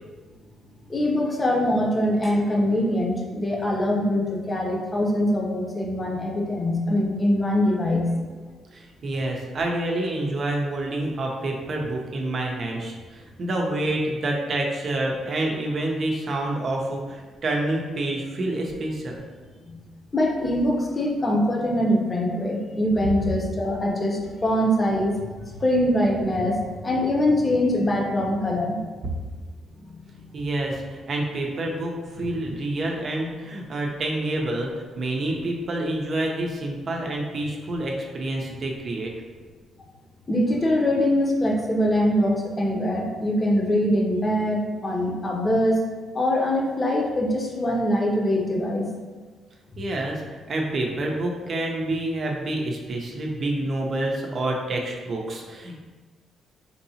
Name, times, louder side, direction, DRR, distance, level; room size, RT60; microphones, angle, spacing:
voice 1, 0.9-8.1 20.1-25.2 25.6-28.8 40.3-45.8 46.1-48.9, left 1 dB, 25° left, 1 dB, 0.7 m, -23 dB
voice 2, 8.7-19.2 30.3-34.7 34.9-39.1 49.8-55.8, right 1 dB, 50° right, 0 dB, 0.7 m, -28 dB
4.5 x 2.8 x 2.8 m, 1.4 s
cardioid pair, 90°, 0 cm